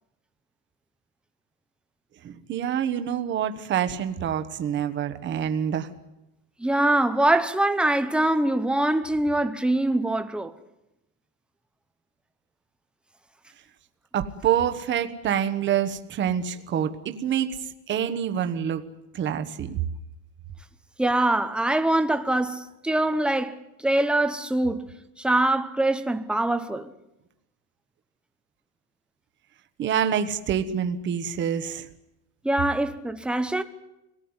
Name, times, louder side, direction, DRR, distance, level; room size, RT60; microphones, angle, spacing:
voice 1, 2.2-5.9 14.1-17.5 17.9-18.8 19.1-19.8 29.8-31.9, right 9 dB, 25° right, 1.2 m, -26 dB
voice 2, 6.6-10.5 21.0-23.5 23.8-24.8 25.2-26.9 32.4-33.6, right 1 dB, ahead, 0.8 m, -23 dB
25.0 x 18.0 x 9.7 m
cardioid pair, 170°, 41 cm